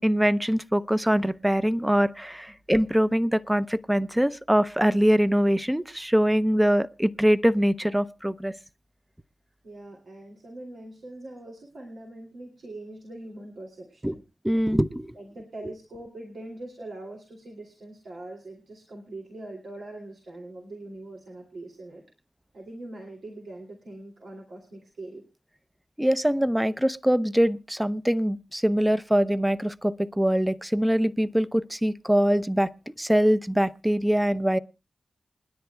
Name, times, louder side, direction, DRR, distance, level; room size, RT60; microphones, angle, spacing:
voice 1, 0.0-8.5 14.0-14.1 14.4-15.1 26.0-32.7 33.0-34.6, equal, 10° right, 0.6 m, -23 dB
voice 2, 9.6-14.2 15.1-22.0 22.5-25.2, right 2 dB, 90° right, 2.6 m, -42 dB
28.0 x 10.0 x 2.3 m
cardioid pair, 50°, 0 cm